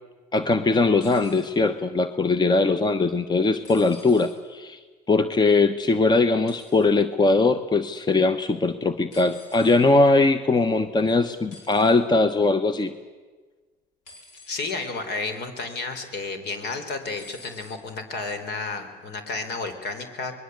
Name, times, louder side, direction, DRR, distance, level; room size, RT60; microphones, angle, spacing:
voice 1, 0.3-4.8 5.1-12.9, left 3 dB, 20° left, 11 dB, 1.1 m, -21 dB
sound 1, 1.0-1.5 3.6-4.4 6.5-6.9 9.1-9.8 11.5-12.0 14.1-14.8 15.3-15.6 17.2-17.8 18.8-18.9, left 2 dB, 85° left, 6.3 m, -48 dB
voice 2, 14.5-20.4, left 3 dB, 60° left, 8 dB, 4.2 m, -32 dB
25.5 x 21.0 x 8.1 m, 1.4 s
supercardioid pair, 100°, 19 cm